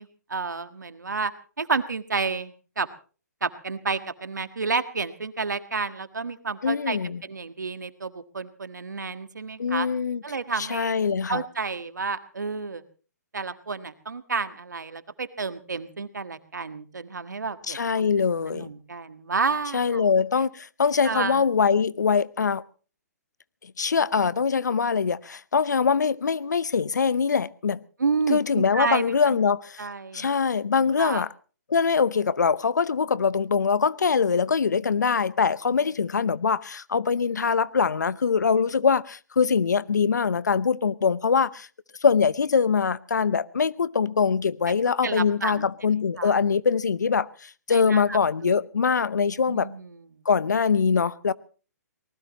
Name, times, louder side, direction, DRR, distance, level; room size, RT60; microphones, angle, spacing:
voice 1, 0.0-1.3 1.6-2.9 3.4-9.9 10.2-10.9 11.3-12.8 13.3-18.1 18.5-20.0 21.0-21.4 28.0-29.4 29.8-30.3 31.0-31.2 45.0-45.6 46.2-46.3 47.7-48.5 49.5-50.0, right 4 dB, 85° right, 1.6 m, -30 dB
voice 2, 6.6-7.2 9.6-10.2 10.6-11.4 17.7-18.7 19.7-22.6 23.6-27.8 28.3-29.9 30.1-31.3 31.7-41.7 42.0-49.7 50.2-51.3, left 5 dB, 80° left, 0.8 m, -23 dB
24.5 x 19.5 x 3.0 m
hypercardioid pair, 135°, 9 cm